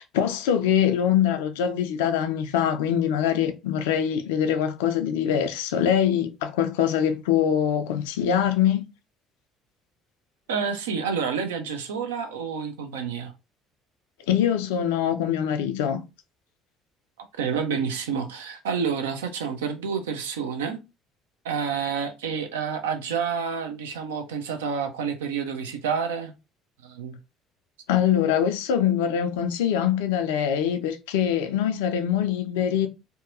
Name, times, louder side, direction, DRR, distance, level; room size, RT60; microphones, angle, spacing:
voice 1, 0.0-8.9 14.3-16.0 27.9-32.9, left 9 dB, 70° left, 0.3 m, -23 dB
voice 2, 10.5-13.3 17.4-20.8 21.4-26.3 26.8-27.2, right 6 dB, 75° right, 0.4 m, -29 dB
2.7 x 2.2 x 2.5 m
figure-of-eight pair, 55°, 0 cm